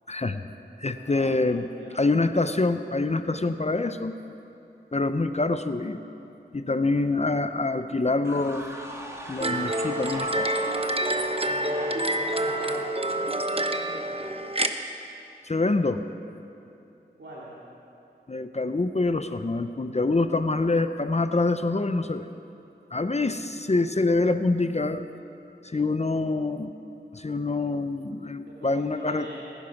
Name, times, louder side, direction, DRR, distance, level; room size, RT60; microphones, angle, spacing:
voice 1, 0.1-0.4 0.8-1.7 1.9-4.1 4.9-6.0 6.5-8.7 9.3-10.5 15.4-16.0 18.3-22.2 22.9-25.1 25.6-26.7 27.1-29.3, left 3 dB, 35° left, 10 dB, 0.6 m, -25 dB
voice 2, 0.9-1.4 1.8-2.1 11.5-14.3 17.2-17.6 23.1-23.6 28.5-29.5, right 1 dB, 80° right, -7 dB, 2.5 m, -43 dB
sound 1, 8.2-14.0, equal, 15° right, 2.0 m, -40 dB
sound 2, 9.4-14.7, right 1 dB, 30° right, 0.9 m, -27 dB
20.0 x 10.0 x 6.0 m, 2.7 s
wide cardioid pair, 50°, 18 cm